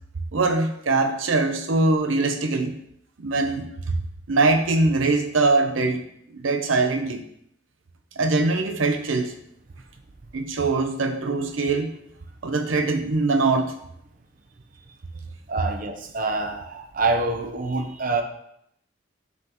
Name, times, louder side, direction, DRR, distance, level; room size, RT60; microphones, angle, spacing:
voice 1, 0.3-2.8 3.2-3.9 4.3-6.0 6.4-7.2 8.2-9.3 10.3-11.9 12.4-13.7, right 3 dB, 85° right, 7 dB, 0.7 m, -22 dB
voice 2, 15.5-18.2, right 3 dB, 45° right, 5 dB, 0.7 m, -26 dB
7.6 x 6.4 x 3.0 m, 0.73 s
head